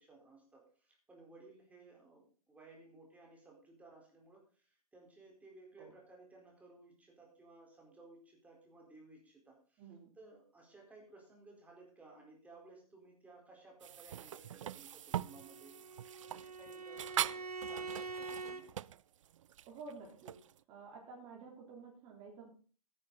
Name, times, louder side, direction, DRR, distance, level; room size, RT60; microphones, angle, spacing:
voice 1, 0.0-9.8 10.2-18.7, right 3 dB, 5° right, 0 dB, 4.3 m, -59 dB
voice 2, 9.8-10.1 19.6-20.3 20.7-22.5, right 4 dB, 25° right, -1 dB, 3.6 m, -51 dB
sound 1, 13.8-20.6, right 11 dB, 55° right, 0.4 m, -42 dB
Bowed string instrument, 15.1-18.7, right 4 dB, 85° right, 1.4 m, -45 dB
13.0 x 10.0 x 4.1 m, 0.40 s
figure-of-eight pair, 125°, 19 cm